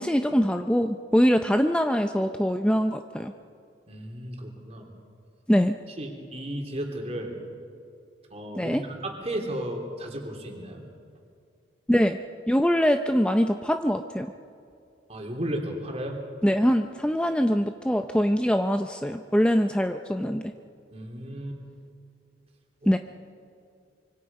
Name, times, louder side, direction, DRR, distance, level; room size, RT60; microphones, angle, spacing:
voice 1, 0.0-3.3 5.5-5.8 8.6-8.8 11.9-12.2 12.5-14.3 16.4-20.4 22.9-23.0, equal, 5° left, 6 dB, 0.5 m, -23 dB
voice 2, 3.9-4.9 6.0-7.3 8.3-10.9 15.1-16.2 20.9-21.6 22.8-22.9, right 1 dB, 35° right, 1 dB, 3.2 m, -34 dB
25.5 x 24.0 x 5.5 m, 2.4 s
head